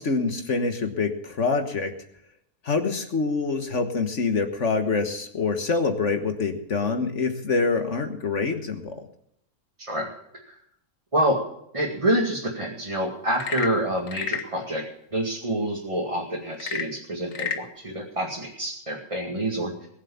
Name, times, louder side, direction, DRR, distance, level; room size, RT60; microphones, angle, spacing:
voice 1, 0.0-1.9 2.6-9.0, left 4 dB, 55° left, 6 dB, 1.7 m, -25 dB
voice 2, 11.7-14.8 15.1-19.7, right 1 dB, 20° right, -2 dB, 2.2 m, -27 dB
Frog / Percussion / Wood, 13.3-14.6 16.5-17.7, left 7 dB, 85° left, 1.7 m, -31 dB
21.0 x 7.5 x 7.1 m, 0.74 s
omnidirectional pair, 1.5 m